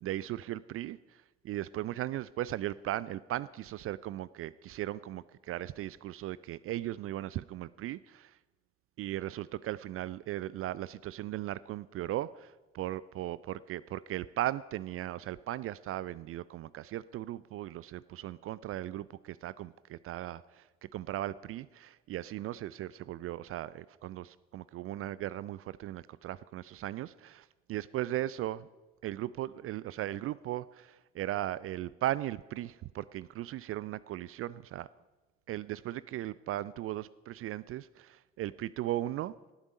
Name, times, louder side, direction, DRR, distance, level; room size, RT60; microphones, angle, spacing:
voice 1, 0.0-8.4 9.0-28.7 29.0-34.9 35.5-39.3, right 14 dB, 40° right, 19 dB, 0.4 m, -37 dB
18.5 x 8.8 x 5.2 m, 1.2 s
figure-of-eight pair, 55°, 36 cm